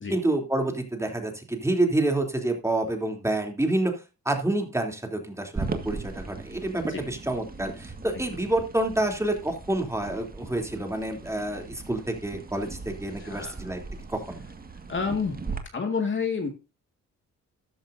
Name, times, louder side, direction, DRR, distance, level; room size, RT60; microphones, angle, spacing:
voice 1, 0.1-3.9 4.2-13.8 14.1-14.4, right 1 dB, 10° right, 3 dB, 3.2 m, -28 dB
sound 1, 5.6-15.6, right 4 dB, 30° right, 1.9 m, -39 dB
voice 2, 13.2-13.6 14.9-15.4 15.7-16.5, left 5 dB, 40° left, 4 dB, 2.1 m, -29 dB
13.5 x 10.5 x 2.7 m, 0.29 s
cardioid pair, 100°, 31 cm